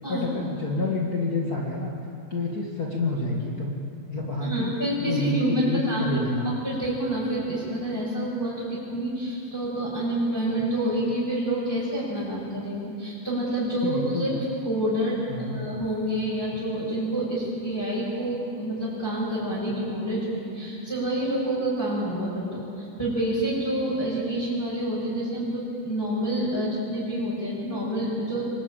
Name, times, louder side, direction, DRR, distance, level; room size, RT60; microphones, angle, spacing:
voice 1, 0.1-1.9 2.3-3.8 4.1-4.7 5.0-6.5 13.8-14.4 15.3-15.6, left 2 dB, 70° left, -3 dB, 0.8 m, -28 dB
voice 2, 4.4-6.2 6.4-14.3 14.6-28.5, right 1 dB, 5° left, -10 dB, 6.4 m, -28 dB
25.5 x 20.5 x 9.0 m, 2.8 s
omnidirectional pair, 5.4 m